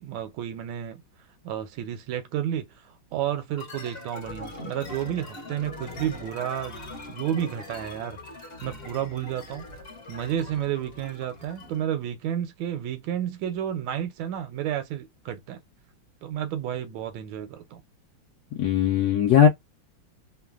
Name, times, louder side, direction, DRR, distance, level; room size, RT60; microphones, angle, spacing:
voice 1, 0.0-1.0 1.4-8.2 8.6-9.7 10.1-15.6 16.2-17.8, right 10 dB, 85° right, 1.4 m, -31 dB
sound 1, 3.6-11.9, left 2 dB, 40° left, 0.9 m, -42 dB
voice 2, 18.5-19.5, left 9 dB, 75° left, 0.9 m, -19 dB
3.1 x 2.2 x 2.3 m
omnidirectional pair, 2.1 m